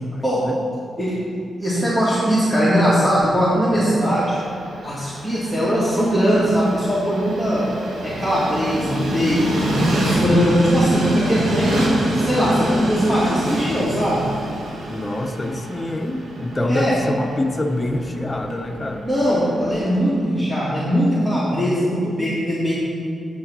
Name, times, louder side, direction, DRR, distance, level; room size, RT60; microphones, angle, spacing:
voice 1, 0.1-0.6 14.9-19.1, left 1 dB, 25° left, 5 dB, 0.7 m, -26 dB
voice 2, 1.6-4.4 4.8-7.7 8.0-14.3 16.7-17.0 19.0-22.8, equal, 10° right, -10 dB, 2.2 m, -20 dB
Train, 3.9-20.0, right 1 dB, 75° right, 1.5 m, -26 dB
8.8 x 5.6 x 5.4 m, 2.3 s
cardioid pair, 70°, 0 cm